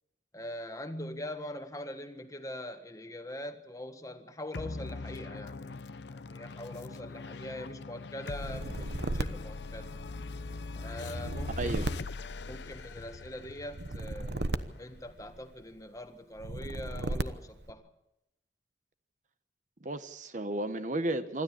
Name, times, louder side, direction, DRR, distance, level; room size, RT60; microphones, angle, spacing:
voice 1, 0.3-5.7 6.1-9.9 10.8-11.8 12.5-17.9, left 1 dB, 20° left, 7 dB, 1.5 m, -43 dB
sound 1, 4.5-15.3, left 3 dB, 75° left, 0.7 m, -42 dB
sound 2, 8.4-10.4 11.0-13.0 13.7-15.6 16.4-17.7, right 2 dB, 70° right, 1.1 m, -36 dB
voice 2, 11.6-11.9 19.8-21.4, right 1 dB, 45° right, 11 dB, 1.0 m, -33 dB
26.5 x 12.5 x 8.6 m, 0.88 s
head